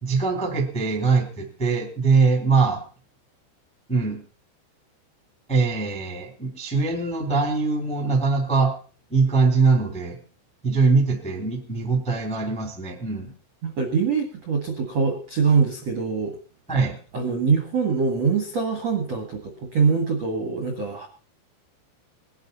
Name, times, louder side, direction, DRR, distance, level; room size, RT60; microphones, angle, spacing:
voice 1, 0.0-2.8 3.9-4.2 5.5-8.7 9.1-10.1 10.6-13.3 16.7-17.0, right 4 dB, 5° left, 4 dB, 1.2 m, -22 dB
voice 2, 13.6-16.4 17.1-21.1, right 5 dB, 60° right, 5 dB, 1.7 m, -23 dB
20.0 x 11.5 x 4.1 m, 0.40 s
omnidirectional pair, 5.9 m